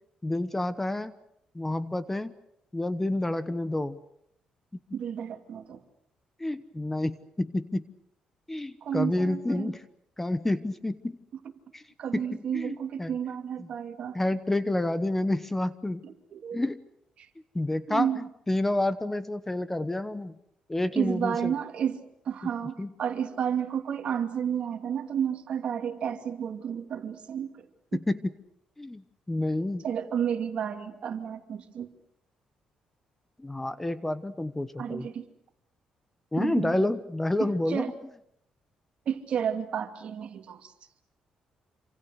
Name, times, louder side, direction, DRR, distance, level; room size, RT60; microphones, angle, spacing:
voice 1, 0.2-1.1 1.5-2.3 2.7-4.0 6.4-7.9 8.5-9.8 10.2-11.2 11.7-11.8 12.1-13.1 13.6-13.7 14.1-16.0 16.5-16.8 17.5-20.3 20.7-21.5 22.8-22.9 27.9-28.3 28.8-29.0 29.3-29.8 33.4-35.1 36.3-37.9, left 1 dB, 10° left, 14 dB, 1.0 m, -29 dB
voice 2, 4.9-5.8 8.8-9.7 12.0-14.2 16.0-16.6 17.2-17.3 17.9-18.2 21.0-22.0 22.2-27.7 29.8-31.9 34.8-35.3 36.4-36.8 37.4-37.9 39.1-40.7, right 8 dB, 55° right, 6 dB, 2.6 m, -31 dB
27.5 x 26.0 x 6.6 m, 0.75 s
cardioid pair, 120°, 2 cm